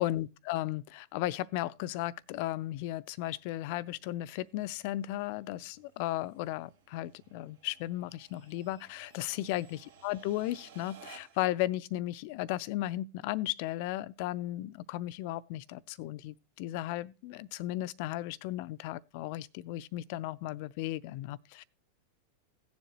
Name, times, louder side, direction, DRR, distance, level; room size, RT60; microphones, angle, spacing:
voice 1, 0.0-21.6, left 15 dB, 45° left, 0.5 m, -35 dB
sound 1, 1.4-11.6, right 6 dB, 60° right, 1.6 m, -59 dB
17.0 x 7.3 x 3.0 m
figure-of-eight pair, 90°, 0 cm